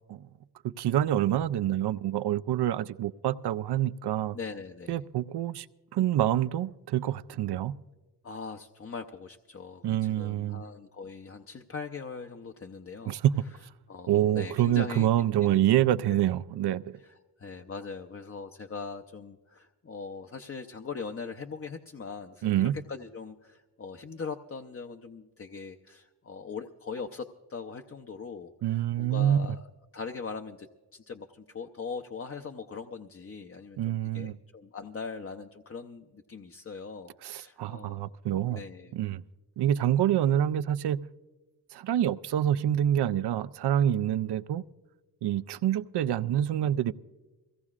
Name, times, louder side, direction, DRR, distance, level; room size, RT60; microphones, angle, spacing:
voice 1, 0.6-4.4 4.9-5.7 5.9-7.7 9.8-10.6 13.1-13.2 14.1-17.0 22.4-22.7 28.6-29.4 33.8-34.4 37.2-38.6 38.9-39.2 39.6-41.0 41.7-44.6 45.2-46.9, right 11 dB, 75° right, 0.5 m, -27 dB
voice 2, 4.3-5.0 8.2-13.2 13.9-15.1 15.4-16.2 17.0-29.7 29.9-30.7 30.9-38.1 38.5-38.9, left 5 dB, 35° left, 0.6 m, -41 dB
23.0 x 16.5 x 2.4 m
cardioid pair, 85°, 40 cm